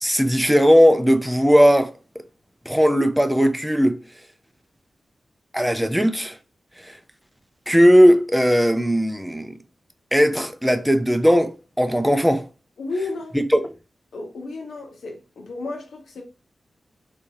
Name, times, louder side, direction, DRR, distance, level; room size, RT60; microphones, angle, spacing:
voice 1, 0.0-1.9 2.7-4.0 5.5-6.4 6.9-7.0 7.7-9.5 10.1-12.4 13.3-13.6, equal, 5° right, 0.4 m, -17 dB
voice 2, 12.8-13.4 14.1-16.2, left 3 dB, 90° left, 1.1 m, -32 dB
3.6 x 2.7 x 3.0 m
wide cardioid pair, 160°, 0 cm